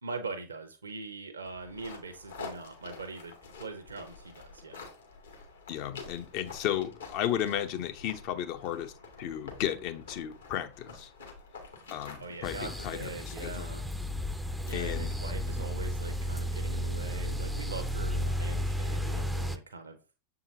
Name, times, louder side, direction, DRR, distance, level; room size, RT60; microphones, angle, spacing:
voice 1, 0.0-4.9 12.2-13.8 14.6-20.0, right 4 dB, 70° right, 0.7 m, -42 dB
sound 1, 1.5-12.9, left 4 dB, 70° left, 1.9 m, -48 dB
voice 2, 5.7-8.9 9.2-11.1 11.9-13.7 14.7-15.1, left 10 dB, 45° left, 0.7 m, -34 dB
sound 2, 12.4-19.6, equal, ahead, 0.5 m, -33 dB
7.3 x 4.9 x 2.7 m
figure-of-eight pair, 90°, 0 cm